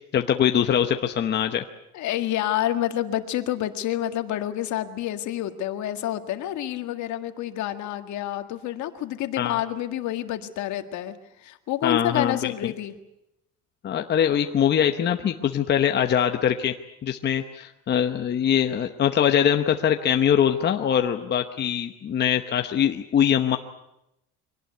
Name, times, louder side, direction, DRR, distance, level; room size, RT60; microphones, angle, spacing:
voice 1, 0.1-1.6 9.4-9.6 11.8-12.7 13.8-16.8 17.0-23.6, left 9 dB, 30° left, 6 dB, 1.0 m, -22 dB
voice 2, 1.9-12.9, left 12 dB, 60° left, 8 dB, 1.9 m, -28 dB
24.0 x 18.5 x 9.5 m, 0.86 s
cardioid pair, 160°, 33 cm